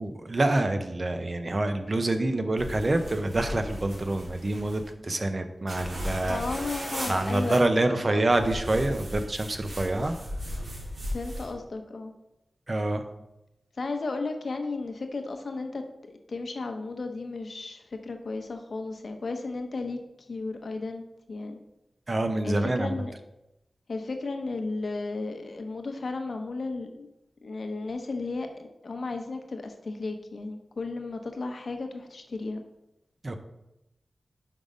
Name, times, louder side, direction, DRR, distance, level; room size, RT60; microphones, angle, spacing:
voice 1, 0.0-6.4 7.1-10.2 12.7-13.0 22.1-22.9 33.2-33.4, right 2 dB, 40° right, 7 dB, 0.7 m, -26 dB
sound 1, 2.6-4.9 5.7-7.6 8.3-11.5, equal, 75° right, 2.5 m, -36 dB
voice 2, 5.9-8.3 11.1-12.1 13.8-20.0 20.3-21.6 22.4-23.1 23.9-27.1 27.4-32.6, left 3 dB, 70° left, 5 dB, 0.8 m, -34 dB
5.5 x 5.3 x 5.0 m, 0.91 s
wide cardioid pair, 80°, 0 cm